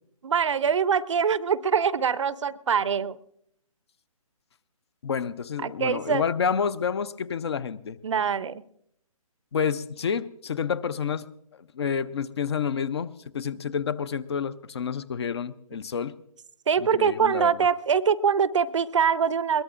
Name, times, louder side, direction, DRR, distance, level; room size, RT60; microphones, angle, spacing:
voice 1, 0.2-3.2 5.6-6.2 8.0-8.6 16.7-19.6, right 7 dB, 55° right, 18 dB, 0.6 m, -23 dB
voice 2, 5.0-8.0 9.5-11.3 11.7-16.2 16.8-17.5, left 7 dB, 45° left, 18 dB, 0.6 m, -29 dB
21.5 x 19.0 x 2.5 m, 0.73 s
figure-of-eight pair, 140°, 19 cm